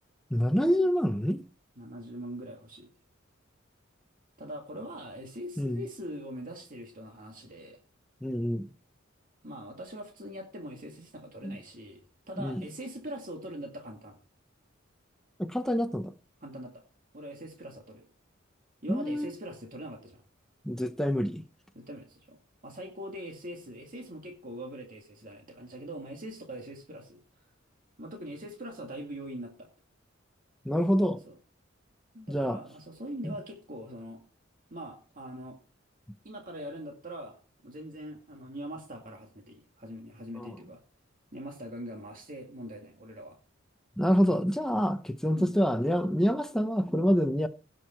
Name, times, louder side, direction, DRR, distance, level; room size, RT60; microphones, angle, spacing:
voice 1, 0.3-1.4 5.6-5.8 8.2-8.7 11.4-11.6 12.4-12.7 15.4-16.1 18.9-19.3 20.6-21.4 30.6-31.2 32.3-32.6 33.2-33.3 40.4-40.5 44.0-47.5, equal, ahead, 0.6 m, -27 dB
voice 2, 1.8-2.9 4.4-7.8 9.4-12.0 12.3-14.2 16.4-16.8 17.1-18.1 18.8-20.2 21.8-22.4 22.6-27.2 28.0-29.7 31.2-31.4 32.1-34.2 34.7-35.6 36.2-37.4 37.6-40.8 41.3-43.4 45.3-45.5, equal, 45° right, 2.1 m, -42 dB
17.5 x 6.3 x 4.4 m
head